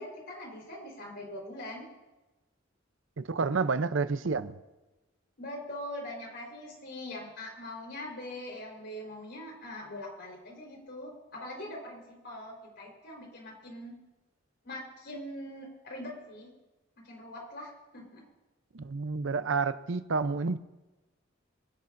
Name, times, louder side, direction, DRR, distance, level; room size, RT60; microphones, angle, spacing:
voice 1, 0.0-1.8 5.4-13.9 14.6-16.5 17.0-18.2, left 1 dB, 60° left, 4.2 m, -42 dB
voice 2, 3.2-4.5 18.7-20.6, right 4 dB, 75° right, 0.6 m, -29 dB
24.5 x 11.0 x 2.6 m
head